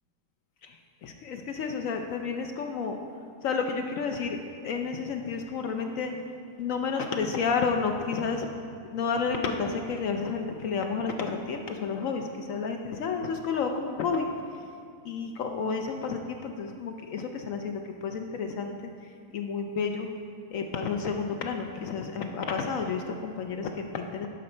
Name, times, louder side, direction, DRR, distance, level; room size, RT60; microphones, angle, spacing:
voice 1, 0.6-3.0 3.4-6.1 6.6-8.5 8.9-14.3 15.0-20.1 20.5-24.3, left 5 dB, 70° left, 4 dB, 0.8 m, -31 dB
10.5 x 5.3 x 4.3 m, 2.4 s
omnidirectional pair, 1.7 m